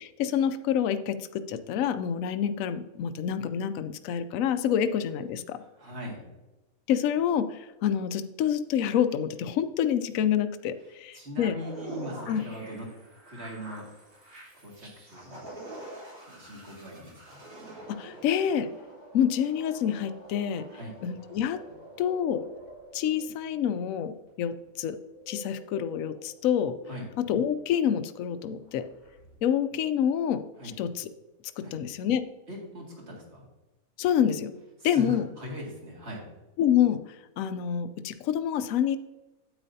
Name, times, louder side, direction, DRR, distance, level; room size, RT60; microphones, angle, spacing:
voice 1, 0.0-5.6 6.9-11.6 12.3-12.4 17.9-18.7 19.1-20.7 21.0-21.6 22.0-22.4 22.9-25.0 25.3-26.8 27.2-28.9 29.4-30.4 30.8-31.1 31.6-32.2 34.0-34.5 34.8-35.3 36.6-37.0 37.4-39.0, left 9 dB, 70° left, 11 dB, 1.0 m, -27 dB
voice 2, 5.6-6.2 11.1-12.9 13.3-13.9 14.6-15.5 16.3-17.4 20.7-21.0 26.9-27.1 30.6-30.7 31.6-31.8 32.5-33.4 34.8-36.2, left 1 dB, 45° right, -2 dB, 2.4 m, -40 dB
sound 1, 11.6-29.4, right 1 dB, 90° right, 3.8 m, -47 dB
9.0 x 8.9 x 2.7 m, 1.1 s
omnidirectional pair, 1.5 m